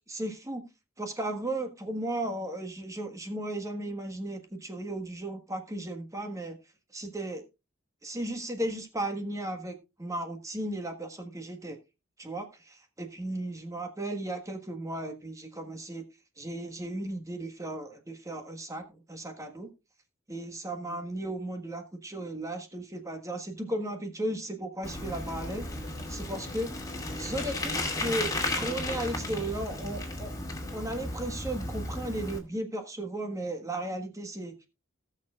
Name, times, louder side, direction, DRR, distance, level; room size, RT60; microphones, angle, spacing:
voice 1, 0.1-0.6 1.0-6.6 6.9-7.4 8.0-11.8 12.2-16.0 16.4-19.7 20.3-25.7 26.1-26.7 27.2-30.3 30.7-34.5, right 1 dB, 15° right, 4 dB, 1.5 m, -35 dB
Bicycle, 24.8-32.4, left 2 dB, 20° left, 2.4 m, -34 dB
19.0 x 6.6 x 2.4 m, 0.26 s
head